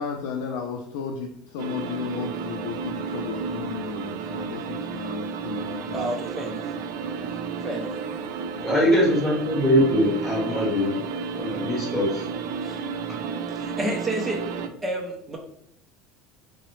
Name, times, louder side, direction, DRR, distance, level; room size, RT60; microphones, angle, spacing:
voice 1, 0.0-6.1, left 6 dB, 75° left, 1 dB, 0.4 m, -34 dB
sound 1, 1.6-14.7, right 6 dB, 75° right, 0.3 m, -32 dB
voice 2, 5.9-6.7 7.6-8.3 12.6-12.8 13.5-14.5 14.8-15.4, right 1 dB, 10° right, -1 dB, 0.5 m, -30 dB
voice 3, 8.6-11.0 11.3-12.2, equal, 5° left, -6 dB, 1.2 m, -22 dB
3.8 x 2.0 x 3.1 m, 0.74 s
cardioid pair, 155°, 0 cm